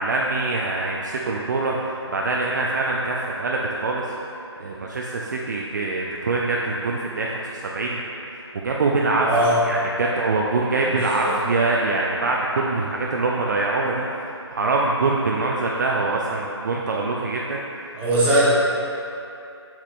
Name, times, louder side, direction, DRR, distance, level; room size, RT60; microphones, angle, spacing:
voice 1, 0.0-4.0 4.6-9.3 9.6-18.0, right 3 dB, 40° right, -2 dB, 0.5 m, -24 dB
voice 2, 9.2-9.6 10.9-11.3 17.9-18.5, right 1 dB, 10° right, -9 dB, 1.1 m, -20 dB
7.5 x 7.3 x 2.5 m, 2.7 s
figure-of-eight pair, 145°, 15 cm